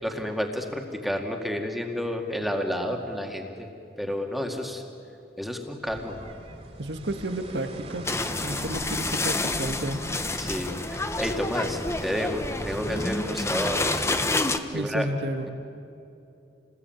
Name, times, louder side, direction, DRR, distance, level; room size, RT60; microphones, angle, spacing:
voice 1, 0.0-3.7 4.0-4.8 5.4-6.2 10.4-14.1 14.7-15.1, equal, ahead, 2 dB, 2.1 m, -30 dB
sound 1, 5.8-14.2, right 1 dB, 40° right, 3.1 m, -42 dB
voice 2, 6.8-8.0 8.4-10.0 14.7-15.5, right 1 dB, 90° right, 7 dB, 1.7 m, -31 dB
sound 2, 8.0-14.6, left 2 dB, 15° left, 1.0 m, -28 dB
29.0 x 20.5 x 9.1 m, 2.7 s
head